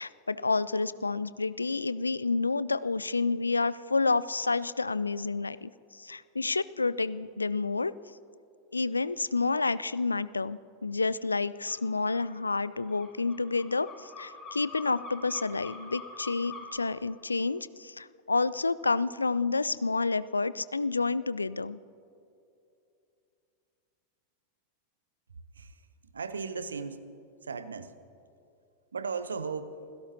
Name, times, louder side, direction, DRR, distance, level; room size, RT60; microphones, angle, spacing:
voice 1, 0.0-7.9 8.7-21.8, left 3 dB, 80° left, 18 dB, 0.3 m, -29 dB
sound 1, 11.7-11.8 12.1-16.8, left 4 dB, 25° left, 4.5 m, -45 dB
voice 2, 26.1-27.0 27.4-27.9 28.9-29.8, right 5 dB, 70° right, 13 dB, 0.8 m, -36 dB
27.5 x 16.5 x 2.8 m, 2.6 s
figure-of-eight pair, 90°, 0 cm